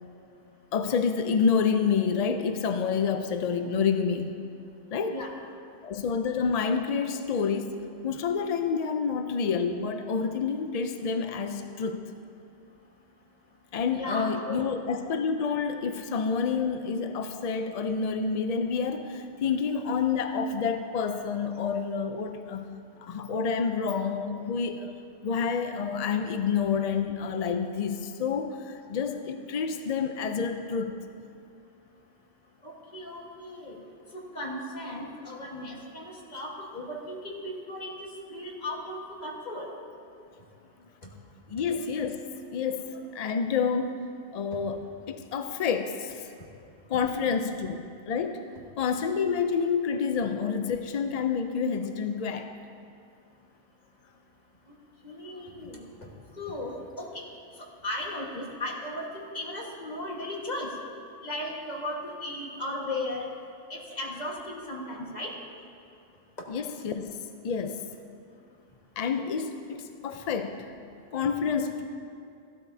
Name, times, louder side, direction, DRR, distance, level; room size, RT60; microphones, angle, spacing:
voice 1, 0.7-4.3 4.9-5.2 5.8-7.8 8.0-12.0 13.7-22.7 23.0-24.9 25.2-31.0 41.5-42.2 42.5-44.0 44.3-46.3 46.9-48.4 48.8-52.5 66.5-67.8 69.0-70.7 71.1-71.8, left 6 dB, 60° left, 7 dB, 0.4 m, -28 dB
voice 2, 13.9-14.7 32.6-33.8 34.1-39.7 44.5-44.6 55.0-55.8 56.4-57.2 57.6-60.7 61.2-63.3 63.7-65.3, left 1 dB, 35° left, -2 dB, 1.6 m, -36 dB
15.0 x 12.0 x 2.7 m, 2.4 s
omnidirectional pair, 1.2 m